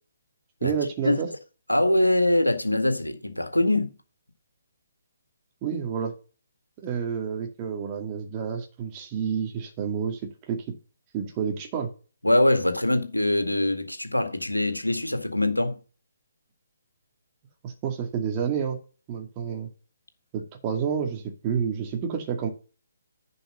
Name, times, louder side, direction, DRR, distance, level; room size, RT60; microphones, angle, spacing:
voice 1, 0.6-1.3 5.6-6.1 6.8-10.6 11.1-11.9 17.6-18.8 19.1-19.7 20.3-22.5, right 7 dB, 25° right, 2.3 m, -29 dB
voice 2, 1.7-3.9 12.2-15.8, left 1 dB, 90° left, 1.9 m, -23 dB
11.0 x 5.5 x 5.3 m
figure-of-eight pair, 135°, 0 cm